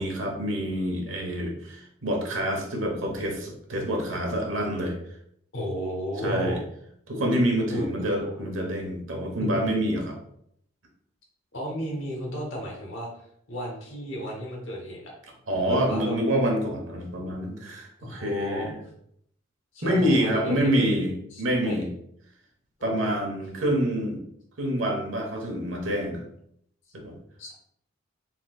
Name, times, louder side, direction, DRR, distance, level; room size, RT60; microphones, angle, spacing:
voice 1, 0.0-4.9 6.2-6.6 7.1-10.1 15.5-18.8 19.8-21.1 21.4-21.9 22.8-24.2 24.6-26.2 26.9-27.1, equal, 75° right, 1 dB, 1.1 m, -27 dB
voice 2, 5.5-6.6 7.7-8.4 9.3-9.5 11.5-13.1 13.5-15.1 15.7-16.2 18.0-18.7 19.7-20.7 21.3-21.8 22.8-23.1 27.4-27.5, equal, 70° left, -1 dB, 1.1 m, -33 dB
4.4 x 3.8 x 2.3 m, 0.71 s
head